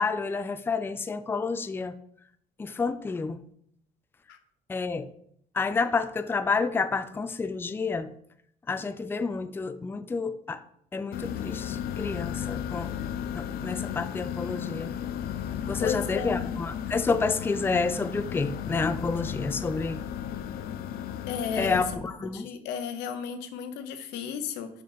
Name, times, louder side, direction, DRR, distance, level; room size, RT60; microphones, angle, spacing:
voice 1, 0.0-2.0 2.6-3.4 4.7-5.1 5.5-8.1 8.7-10.6 10.9-12.9 13.3-14.9 15.7-20.1 21.6-22.5, left 4 dB, 15° left, 11 dB, 0.4 m, -29 dB
sound 1, 11.1-21.9, left 9 dB, 65° left, 0.5 m, -34 dB
voice 2, 15.8-16.6 21.3-21.8 22.3-24.7, left 7 dB, 85° left, 9 dB, 0.9 m, -33 dB
5.3 x 5.2 x 5.7 m, 0.68 s
cardioid pair, 110°, 17 cm